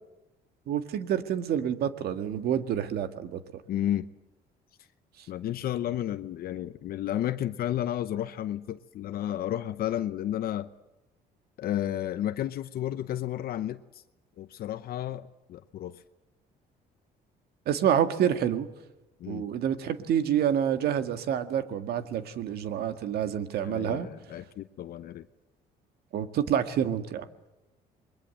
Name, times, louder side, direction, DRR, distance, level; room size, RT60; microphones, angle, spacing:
voice 1, 0.7-3.6 17.7-18.7 19.3-24.1 26.1-27.3, right 9 dB, 70° right, 9 dB, 1.9 m, -28 dB
voice 2, 3.7-4.1 5.3-10.7 11.6-14.0 14.4-16.0 19.2-19.5 23.6-25.2, left 12 dB, 60° left, 11 dB, 0.8 m, -32 dB
28.0 x 22.0 x 7.8 m, 0.98 s
cardioid pair, 110°, 17 cm